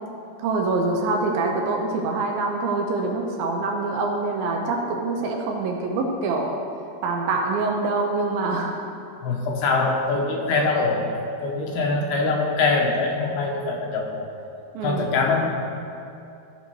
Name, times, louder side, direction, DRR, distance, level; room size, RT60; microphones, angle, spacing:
voice 1, 0.4-6.6 7.0-8.8 14.7-15.2, right 3 dB, 75° right, 1 dB, 2.4 m, -25 dB
voice 2, 9.2-14.3 14.8-15.5, left 3 dB, 80° left, 0 dB, 3.0 m, -23 dB
15.0 x 5.3 x 4.7 m, 2.6 s
omnidirectional pair, 4.6 m